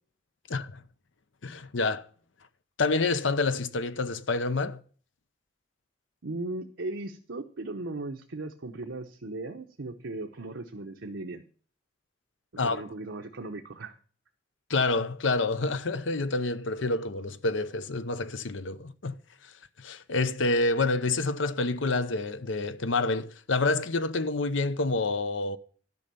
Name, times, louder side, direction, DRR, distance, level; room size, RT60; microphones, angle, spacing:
voice 1, 0.5-0.8 1.4-2.0 2.8-4.8 12.6-12.8 14.7-19.5 19.8-25.6, left 3 dB, 85° left, 0.8 m, -28 dB
voice 2, 6.2-11.4 12.6-14.0, right 2 dB, 90° right, 0.9 m, -37 dB
12.0 x 5.5 x 6.8 m
head